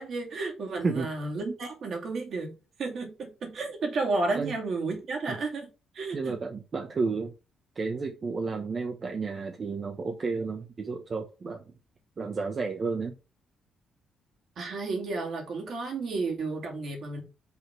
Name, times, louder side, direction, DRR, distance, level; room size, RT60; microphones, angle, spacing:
voice 1, 0.0-2.5 2.8-5.7 5.9-6.4 14.6-17.2, right 3 dB, 60° right, 2.7 m, -32 dB
voice 2, 6.1-7.3 7.7-11.7 12.2-13.2, right 4 dB, 40° right, 1.1 m, -32 dB
5.7 x 4.2 x 6.0 m
cardioid pair, 90°, 0 cm